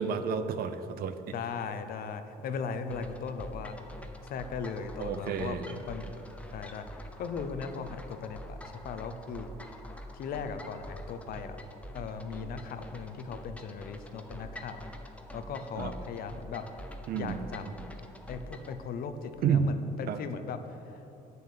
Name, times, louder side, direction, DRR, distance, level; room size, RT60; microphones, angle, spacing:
voice 1, 0.0-1.2 5.0-5.7 15.8-15.9 17.1-17.4 19.4-19.7 20.1-20.2, right 7 dB, 65° right, 11 dB, 0.6 m, -30 dB
voice 2, 1.3-3.8 4.2-6.0 6.5-9.5 10.1-11.6 11.9-14.8 15.3-16.6 17.1-17.6 18.3-21.0, left 5 dB, 60° left, 9 dB, 0.7 m, -38 dB
sound 1, 2.9-18.8, equal, 10° left, 0.8 m, -45 dB
8.7 x 6.8 x 6.5 m, 2.9 s
cardioid pair, 110°, 17 cm